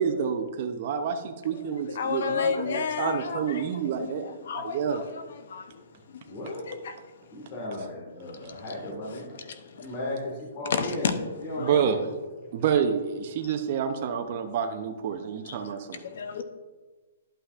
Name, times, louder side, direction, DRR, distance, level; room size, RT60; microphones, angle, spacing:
voice 1, 0.0-5.0 7.8-7.9 11.6-12.1 12.5-16.0, right 7 dB, 45° right, 0.6 m, -28 dB
voice 2, 2.0-5.7 6.1-7.0 8.4-9.9 10.7-11.1 11.5-11.7 15.5-15.6 16.0-16.4, left 6 dB, 65° left, 0.7 m, -32 dB
voice 3, 6.3-6.6 7.3-9.4 9.8-10.2 10.6-11.8, left 1 dB, 30° left, 1.8 m, -35 dB
11.0 x 5.6 x 2.5 m
hypercardioid pair, 150°, 0 cm